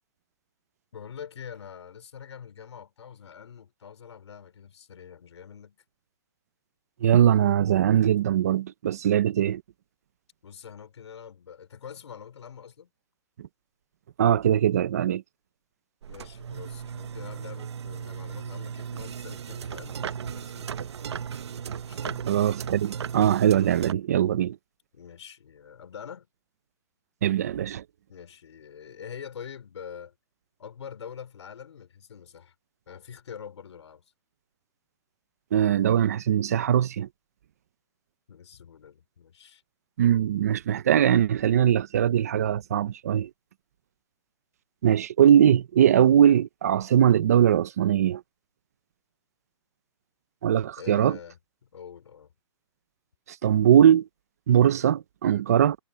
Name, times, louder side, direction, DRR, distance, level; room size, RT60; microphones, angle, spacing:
voice 1, 0.9-5.8 10.4-12.9 16.1-21.0 21.9-22.8 24.9-26.3 28.1-30.1 30.6-32.5 32.9-34.0 38.3-39.6 50.8-52.3, left 7 dB, 70° left, 4.7 m, -45 dB
voice 2, 7.0-9.6 14.2-15.2 22.3-24.6 27.2-27.8 35.5-37.1 40.0-43.3 44.8-48.2 50.4-51.2 53.4-54.1 54.5-55.8, right 10 dB, 35° right, 0.5 m, -21 dB
sound 1, 16.0-23.9, right 7 dB, 65° right, 1.0 m, -36 dB
hypercardioid pair, 180°, 15 cm